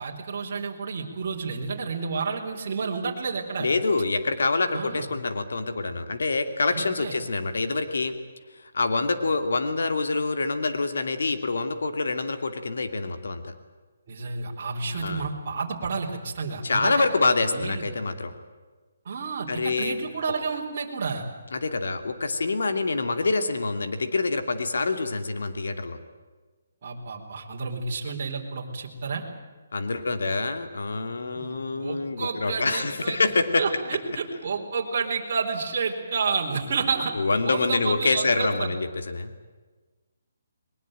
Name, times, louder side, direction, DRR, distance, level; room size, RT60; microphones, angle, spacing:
voice 1, 0.0-3.7 4.7-5.1 6.7-7.1 14.1-17.0 17.4-18.0 19.0-21.3 26.8-29.2 31.3-33.2 33.6-37.1 37.4-38.7, right 5 dB, 40° right, -2 dB, 4.3 m, -30 dB
voice 2, 3.6-8.1 8.7-13.5 14.9-15.3 16.6-18.3 19.5-20.0 21.5-26.0 29.7-33.6 37.1-39.3, left 3 dB, 80° left, 8 dB, 2.8 m, -26 dB
21.5 x 20.5 x 9.1 m, 1.3 s
hypercardioid pair, 170°, 0 cm